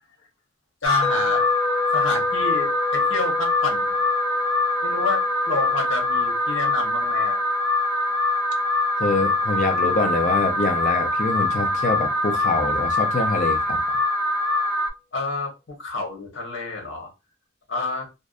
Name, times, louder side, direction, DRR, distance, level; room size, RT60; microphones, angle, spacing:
voice 1, 0.8-1.5 1.9-4.0 4.8-7.4 15.1-17.1 17.7-18.1, left 3 dB, 80° left, 0.9 m, -29 dB
Alarm, 0.8-14.9, left 2 dB, 85° right, 0.5 m, -23 dB
sound 1, 1.0-11.1, left 3 dB, ahead, 1.0 m, -33 dB
voice 2, 9.0-13.8, left 3 dB, 40° left, 0.4 m, -25 dB
2.5 x 2.1 x 2.4 m
head